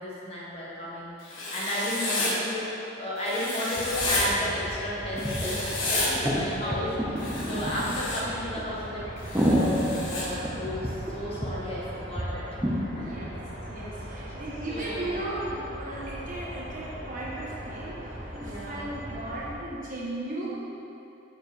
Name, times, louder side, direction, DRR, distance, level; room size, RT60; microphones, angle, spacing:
voice 1, 0.0-12.4 13.0-13.1 14.7-15.1 18.4-18.8, left 1 dB, 30° left, -7 dB, 1.2 m, -33 dB
Writing, 1.3-2.3 3.3-4.2 5.2-6.1 7.2-8.2 9.2-10.3, left 2 dB, 80° left, 1.3 m, -31 dB
sound 1, 3.7-19.5, equal, 65° right, 1.5 m, -39 dB
sound 2, 4.2-4.3 4.5-4.6 5.2-5.6 6.1-8.1 8.6-8.7 9.1-11.1 11.4-11.5 11.8-11.9 12.2-12.3 12.6-12.8, equal, 10° right, 0.6 m, -28 dB
voice 2, 12.9-13.3 13.7-20.5, right 1 dB, 40° right, -6 dB, 1.2 m, -36 dB
6.5 x 6.5 x 3.5 m, 2.8 s
head